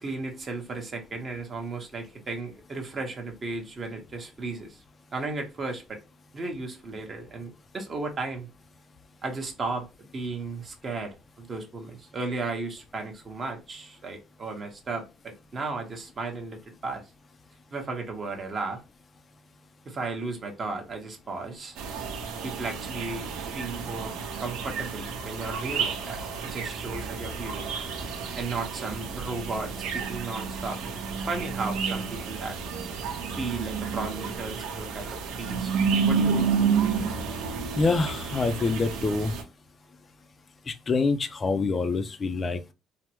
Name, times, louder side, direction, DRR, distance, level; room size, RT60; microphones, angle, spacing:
voice 1, 0.0-4.8 5.1-6.0 6.3-8.5 9.2-17.0 17.7-18.8 19.8-21.8 22.4-24.1 24.4-27.7 28.4-31.0 31.3-32.6 33.3-35.8 36.1-36.4, right 3 dB, 30° right, 0.8 m, -35 dB
sound 1, 21.8-39.4, right 5 dB, 85° right, 0.7 m, -30 dB
voice 2, 37.8-39.3 40.7-42.7, left 3 dB, 25° left, 0.4 m, -26 dB
3.3 x 2.0 x 2.9 m
cardioid pair, 145°, 0 cm